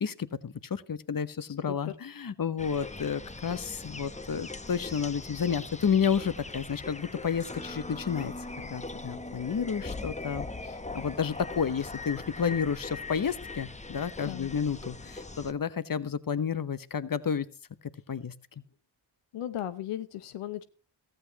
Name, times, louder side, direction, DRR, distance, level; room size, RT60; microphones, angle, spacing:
voice 1, 0.0-17.5 18.1-18.3, left 7 dB, 40° left, 15 dB, 1.0 m, -31 dB
sound 1, 2.6-15.5, left 3 dB, 15° left, 0.8 m, -41 dB
voice 2, 14.2-14.5 19.3-20.6, left 11 dB, 90° left, 12 dB, 0.8 m, -36 dB
14.5 x 14.0 x 3.0 m, 0.35 s
cardioid pair, 40°, 50 cm